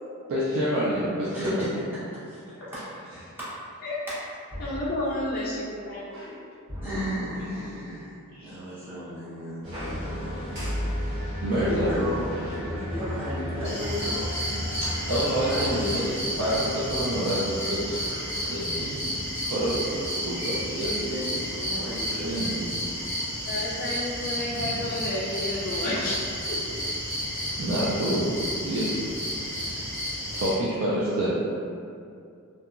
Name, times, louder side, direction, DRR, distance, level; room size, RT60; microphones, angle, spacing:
voice 1, 0.3-1.6 6.1-6.3 8.3-8.5 11.4-12.0 14.8-18.0 18.4-21.1 22.1-22.7 24.5-24.8 27.6-28.3 28.6-28.9 29.6-29.7 30.3-31.3, right 1 dB, 65° right, -8 dB, 0.4 m, -28 dB
voice 2, 1.3-2.0 2.3-2.8 3.4-3.5 4.1-4.2 6.8-10.4 11.5-14.3 15.5-15.7 21.1-22.4, equal, 10° right, -13 dB, 0.8 m, -34 dB
sound 1, 4.5-5.6 6.7-7.8 9.6-13.2 14.0-14.1 17.4-18.7 20.0-20.1 20.4-21.6, equal, 50° right, 1.1 m, -38 dB
voice 3, 4.6-6.4 23.5-26.2 26.5-26.6, left 1 dB, 45° left, -7 dB, 0.3 m, -31 dB
sound 2, 9.6-20.4, equal, 80° right, 1.1 m, -36 dB
sound 3, 13.6-30.5, equal, 15° left, 1.3 m, -31 dB
2.8 x 2.3 x 2.4 m, 2.4 s
head